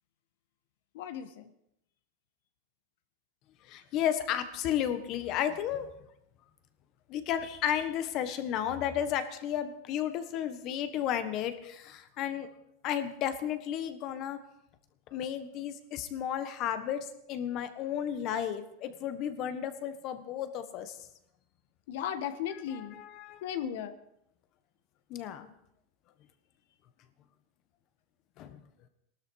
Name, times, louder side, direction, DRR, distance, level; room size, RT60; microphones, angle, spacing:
voice 1, 0.9-1.5 21.9-23.0 23.4-24.0, left 9 dB, 70° left, 10 dB, 1.4 m, -36 dB
voice 2, 3.6-5.9 7.1-12.5 12.8-14.4 15.1-21.0 22.7-23.4 25.1-25.5 28.4-28.6, left 10 dB, 40° left, 10 dB, 1.4 m, -33 dB
18.0 x 12.5 x 4.8 m, 0.78 s
supercardioid pair, 145°, 0 cm